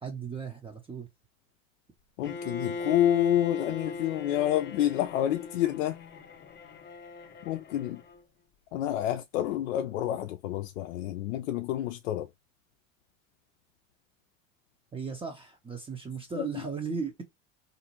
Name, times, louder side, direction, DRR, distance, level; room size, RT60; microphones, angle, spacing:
voice 1, 0.0-1.1 14.9-17.2, right 5 dB, 15° right, 0.6 m, -36 dB
voice 2, 2.2-6.0 7.4-8.0 8.7-12.3 16.3-16.7, left 12 dB, 75° left, 0.5 m, -28 dB
Bowed string instrument, 2.2-8.2, left 3 dB, 30° left, 0.6 m, -39 dB
2.6 x 2.4 x 2.9 m
hypercardioid pair, 90°, 38 cm